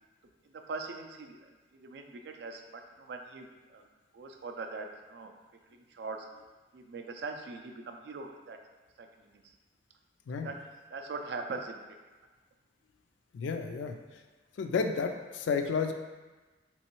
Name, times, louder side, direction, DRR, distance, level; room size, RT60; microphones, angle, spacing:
voice 1, 0.4-1.4 1.7-3.9 4.1-5.3 5.7-6.3 6.7-8.6 9.0-9.5 10.4-12.0, right 3 dB, 60° right, 4 dB, 0.3 m, -42 dB
voice 2, 13.3-14.0 14.6-15.9, left 5 dB, 75° left, 6 dB, 0.3 m, -31 dB
3.6 x 3.0 x 2.9 m, 1.2 s
head